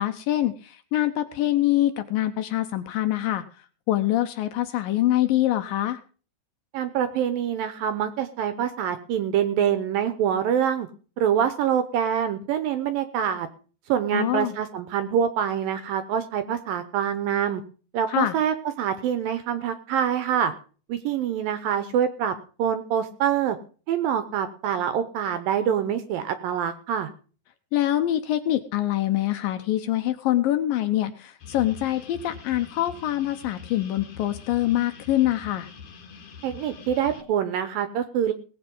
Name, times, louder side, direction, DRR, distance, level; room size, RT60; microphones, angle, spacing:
voice 1, 0.0-3.4 3.9-6.0 14.1-14.5 18.1-18.4 27.7-35.7, left 13 dB, 80° left, 9 dB, 2.2 m, -24 dB
voice 2, 6.7-10.9 11.2-13.5 13.9-17.6 17.9-20.5 20.9-22.3 22.6-23.6 23.9-27.1 36.4-38.3, right 9 dB, 75° right, 11 dB, 2.3 m, -25 dB
sound 1, 31.4-37.2, left 6 dB, 50° left, 2.1 m, -44 dB
18.0 x 8.3 x 5.3 m, 0.39 s
omnidirectional pair, 4.8 m